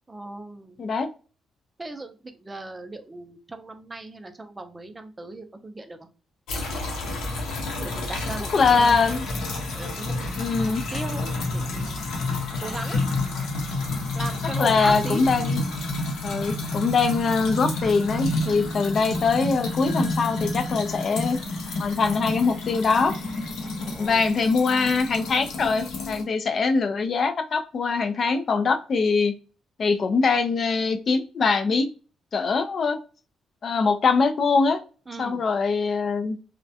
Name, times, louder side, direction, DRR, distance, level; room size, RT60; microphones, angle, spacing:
voice 1, 0.1-0.8 1.8-6.1 7.8-9.0 9.7-10.2 10.7-11.9 12.6-13.0 14.1-15.3 23.8-24.3 35.1-35.4, right 2 dB, 20° right, 6 dB, 0.4 m, -37 dB
sound 1, 6.5-26.2, left 2 dB, 80° left, 0.7 m, -29 dB
voice 2, 8.5-9.2 10.4-10.8 14.6-15.6 16.2-21.4 21.8-23.1 24.0-29.3 29.8-31.9 32.3-33.0 33.6-34.8 35.2-36.5, left 4 dB, 50° left, 8 dB, 0.3 m, -23 dB
2.2 x 2.1 x 2.7 m, 0.35 s
cardioid pair, 90°, 0 cm